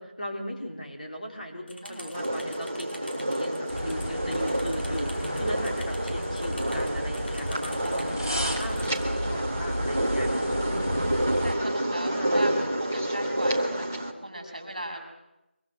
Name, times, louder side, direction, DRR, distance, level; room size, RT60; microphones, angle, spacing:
voice 1, 0.0-11.3 12.1-12.7, equal, 45° left, 1 dB, 3.9 m, -38 dB
sound 1, 1.7-9.0, equal, 60° left, 5.2 m, -46 dB
voice 2, 1.8-2.1 5.7-5.8 7.8-8.0 10.3-10.6 11.4-15.0, right 1 dB, 35° right, 3 dB, 6.4 m, -38 dB
sound 2, 2.1-14.1, right 1 dB, 15° right, 0.9 m, -29 dB
sound 3, 3.7-11.5, equal, 20° left, 2.5 m, -32 dB
24.0 x 22.5 x 6.3 m, 0.94 s
figure-of-eight pair, 180°, 6 cm